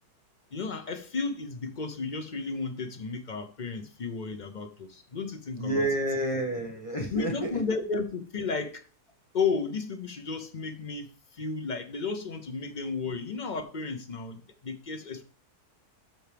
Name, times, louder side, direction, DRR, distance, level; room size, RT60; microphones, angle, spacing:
voice 1, 0.5-5.8 7.1-8.9 9.3-15.2, left 4 dB, 45° left, 0.6 m, -33 dB
voice 2, 5.5-7.6, right 1 dB, 25° left, 1.1 m, -29 dB
13.0 x 4.5 x 3.4 m
omnidirectional pair, 1.7 m